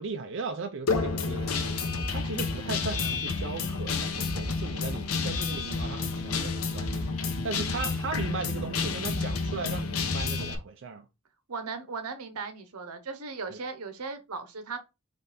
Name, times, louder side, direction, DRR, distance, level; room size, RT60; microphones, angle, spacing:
voice 1, 0.0-1.8 2.1-7.1 7.4-11.1 13.5-13.6, right 4 dB, 55° right, 0.5 m, -37 dB
Guitar, 0.9-10.5, left 4 dB, 80° left, 0.8 m, -30 dB
voice 2, 7.5-7.9 11.5-14.8, right 4 dB, 90° right, 0.8 m, -37 dB
4.2 x 3.2 x 3.3 m
head